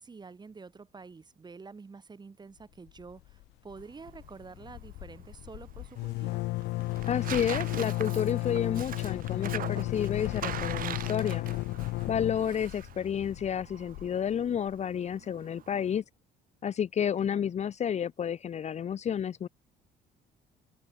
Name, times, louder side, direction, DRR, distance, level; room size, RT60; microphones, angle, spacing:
voice 1, 0.0-6.4 17.2-17.5, right 4 dB, 25° right, 5.9 m, -48 dB
sound 1, 2.9-3.4 3.7-3.8 4.1-14.7, left 20 dB, 90° left, 1.9 m, -34 dB
Tearing, 3.8-16.0, right 11 dB, 55° right, 2.7 m, -43 dB
voice 2, 7.1-11.4 12.1-16.0 16.6-19.5, left 8 dB, 40° left, 1.0 m, -30 dB
cardioid pair, 110°, 17 cm